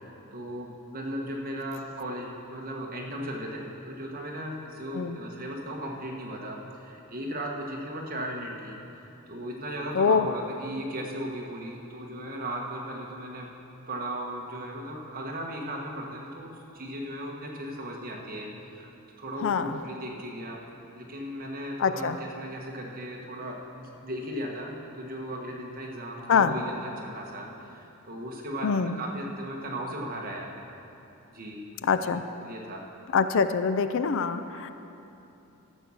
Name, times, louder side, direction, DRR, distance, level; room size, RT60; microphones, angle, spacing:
voice 1, 0.3-8.8 9.3-13.5 13.9-18.9 19.2-20.6 21.0-30.5 31.3-31.7 32.0-32.2 32.4-32.9, right 1 dB, 40° right, -1 dB, 1.4 m, -36 dB
voice 2, 9.9-10.3 19.4-19.8 21.8-22.2 26.3-26.5 28.6-29.0 31.8-32.2 33.1-34.7, left 6 dB, 60° left, 11 dB, 0.4 m, -24 dB
12.5 x 6.3 x 7.1 m, 2.9 s
head